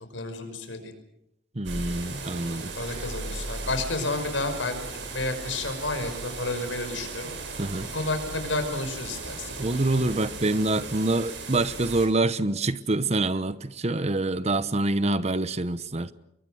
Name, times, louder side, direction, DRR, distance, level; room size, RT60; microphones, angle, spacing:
voice 1, 0.1-0.9 2.7-4.8 5.1-7.3 7.9-10.0, left 2 dB, 80° left, 5.6 m, -31 dB
voice 2, 1.5-2.7 7.6-7.9 9.6-16.1, right 2 dB, 35° right, 0.9 m, -26 dB
sound 1, 1.6-12.1, right 3 dB, 70° right, 6.1 m, -37 dB
27.0 x 23.0 x 6.4 m
head